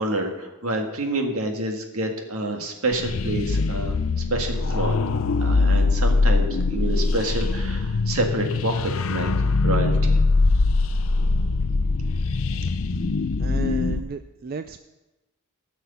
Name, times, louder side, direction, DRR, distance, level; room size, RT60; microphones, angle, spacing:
voice 1, 0.0-4.0 4.3-5.0 5.4-9.3 9.6-10.2, right 1 dB, 75° right, 3 dB, 1.7 m, -28 dB
sound 1, 2.9-14.0, left 3 dB, 65° left, 0.6 m, -22 dB
voice 2, 13.4-14.8, right 5 dB, 40° right, 10 dB, 0.3 m, -33 dB
14.0 x 6.3 x 6.9 m, 1.0 s
head